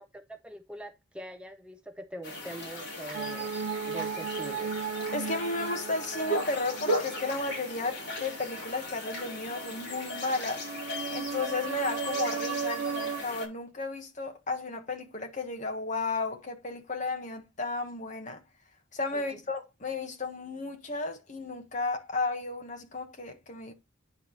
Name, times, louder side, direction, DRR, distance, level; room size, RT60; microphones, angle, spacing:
voice 1, 0.0-3.5 3.9-4.8 19.1-19.4, right 1 dB, 5° right, 0.5 m, -43 dB
sound 1, 2.2-13.5, left 1 dB, 55° left, 4.4 m, -37 dB
sound 2, 3.1-8.0 10.5-13.2, right 7 dB, 70° right, 0.4 m, -35 dB
voice 2, 5.1-10.6 11.1-18.4 18.9-23.7, left 3 dB, 35° left, 1.4 m, -34 dB
9.5 x 4.7 x 4.0 m
head